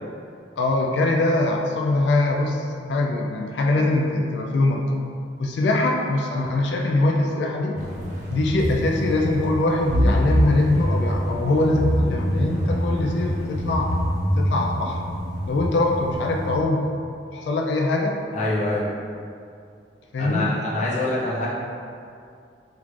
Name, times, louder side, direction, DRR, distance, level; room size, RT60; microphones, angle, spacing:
voice 1, 0.6-4.9 5.4-7.8 8.3-14.0 14.4-15.0 15.4-16.9 17.3-18.2 20.1-20.5, left 2 dB, 70° left, 0 dB, 0.3 m, -22 dB
sound 1, 7.8-16.6, equal, 40° right, 0.6 m, -25 dB
voice 2, 18.3-18.9 20.2-21.5, left 2 dB, 40° left, -7 dB, 0.7 m, -25 dB
3.4 x 2.5 x 3.1 m, 2.4 s
head